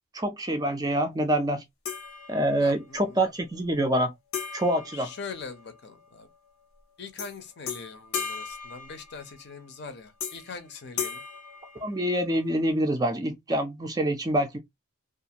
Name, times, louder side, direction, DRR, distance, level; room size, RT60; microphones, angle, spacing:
voice 1, 0.1-1.6 2.3-4.1 4.5-5.1 11.8-14.6, right 1 dB, 15° right, 0.4 m, -26 dB
sound 1, 1.8-2.8 4.3-5.9 7.2-7.4 7.7-9.5 10.2-10.6 11.0-12.4, left 6 dB, 80° left, 0.9 m, -37 dB
voice 2, 2.6-3.3 4.9-6.3 7.0-11.2, left 4 dB, 50° left, 0.6 m, -42 dB
2.5 x 2.4 x 2.8 m
head